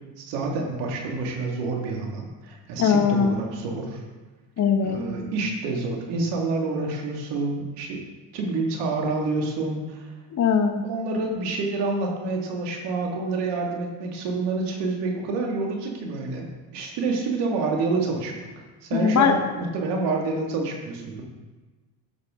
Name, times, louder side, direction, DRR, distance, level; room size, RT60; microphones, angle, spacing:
voice 1, 0.2-4.0 4.8-8.0 8.3-10.1 10.8-16.5 16.7-18.3 18.8-21.2, right 3 dB, 90° right, 0 dB, 2.1 m, -28 dB
voice 2, 2.8-3.4 4.6-5.0 10.3-10.8 18.9-19.3, left 6 dB, 45° left, 5 dB, 1.1 m, -20 dB
11.5 x 6.7 x 3.7 m, 1.3 s
cardioid pair, 110°, 40 cm